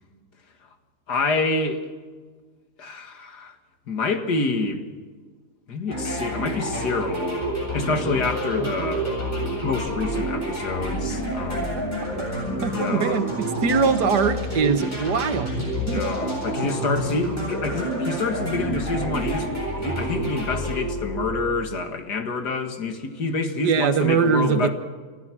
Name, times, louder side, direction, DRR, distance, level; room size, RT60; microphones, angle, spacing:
voice 1, 1.1-1.9 2.8-3.6 3.9-4.8 5.7-7.4 7.7-9.1 9.6-11.8 12.7-13.2 15.8-24.7, left 3 dB, 75° left, 6 dB, 2.4 m, -27 dB
sound 1, 5.9-21.8, right 1 dB, 25° left, 7.9 m, -28 dB
voice 2, 12.6-16.1 16.6-16.7 17.4-17.5 23.6-24.7, right 5 dB, 80° right, 9 dB, 1.9 m, -23 dB
29.0 x 14.5 x 6.2 m, 1.5 s
omnidirectional pair, 1.8 m